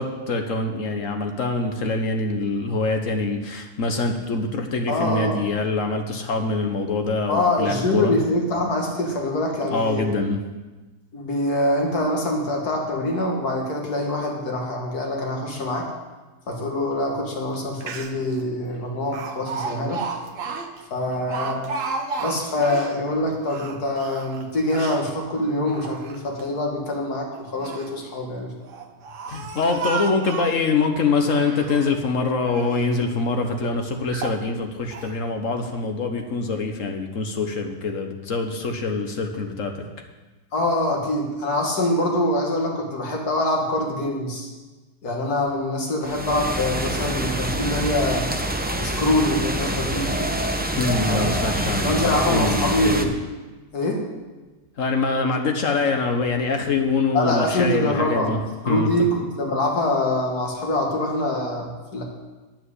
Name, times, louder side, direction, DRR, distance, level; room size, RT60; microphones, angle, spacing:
voice 1, 0.0-8.1 9.6-10.4 29.3-39.9 50.8-53.1 54.8-58.4 58.7-58.9, left 3 dB, 55° left, 5 dB, 1.4 m, -24 dB
voice 2, 4.9-5.4 7.3-10.1 11.1-15.9 16.5-20.0 20.9-21.7 22.2-28.5 40.5-44.5 45.0-48.3 48.7-50.3 51.0-53.1 53.7-54.0 57.1-58.3 58.6-62.0, left 1 dB, 75° left, 0 dB, 2.5 m, -24 dB
Speech, 17.5-17.6 17.8-18.3 19.1-23.0 23.4-25.1 25.6-26.4 27.4-27.9 28.6-30.7 31.2-32.0 32.4-32.9 33.5-33.6 34.1-34.4 34.9-35.1, right 4 dB, 60° right, 1.2 m, -33 dB
sound 1, 46.0-53.0, right 1 dB, 15° right, 0.4 m, -26 dB
9.1 x 7.6 x 8.3 m, 1.2 s
omnidirectional pair, 1.7 m